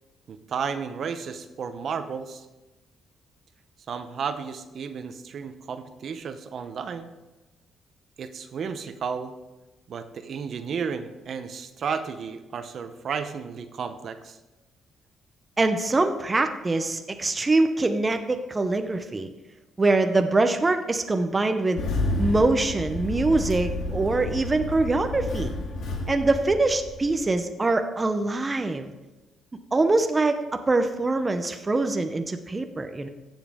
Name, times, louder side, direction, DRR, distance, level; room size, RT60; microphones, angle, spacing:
voice 1, 0.3-2.5 3.9-7.1 8.2-9.3 9.9-14.4, right 6 dB, 55° right, 9 dB, 0.8 m, -33 dB
voice 2, 15.6-19.3 19.8-21.8 22.2-25.5 26.1-28.9 29.7-30.4 30.7-33.1, right 2 dB, 20° right, 7 dB, 0.7 m, -24 dB
Engine starting, 21.8-27.3, left 2 dB, 70° left, 2.0 m, -30 dB
15.0 x 7.2 x 3.6 m, 1.1 s
cardioid pair, 110°, 0 cm